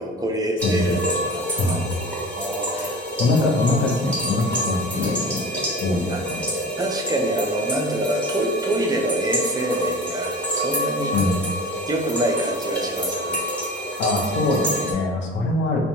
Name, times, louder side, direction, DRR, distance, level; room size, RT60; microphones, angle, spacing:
voice 1, 0.0-1.9 2.4-3.1 4.9-5.2 6.1-6.2 6.8-11.2 11.9-13.4, right 1 dB, 20° right, 1 dB, 0.3 m, -26 dB
voice 2, 0.6-1.0 1.5-1.8 2.7-5.4 5.8-6.4 11.1-11.3 14.0-15.8, left 2 dB, 75° left, 2 dB, 0.5 m, -23 dB
sound 1, 0.6-14.9, equal, 5° left, 0.8 m, -28 dB
2.5 x 2.1 x 2.8 m, 1.3 s
cardioid pair, 90°, 20 cm